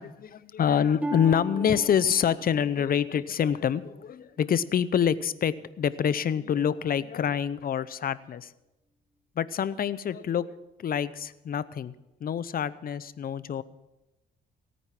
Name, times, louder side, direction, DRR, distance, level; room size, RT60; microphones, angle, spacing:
voice 1, 0.0-8.5 9.4-11.9 12.2-13.6, left 8 dB, 45° left, 17 dB, 0.7 m, -26 dB
Harp, 1.0-4.8 5.3-5.7 6.3-6.5, equal, 5° right, 1.4 m, -39 dB
17.0 x 9.4 x 5.9 m, 0.97 s
cardioid pair, 90°, 20 cm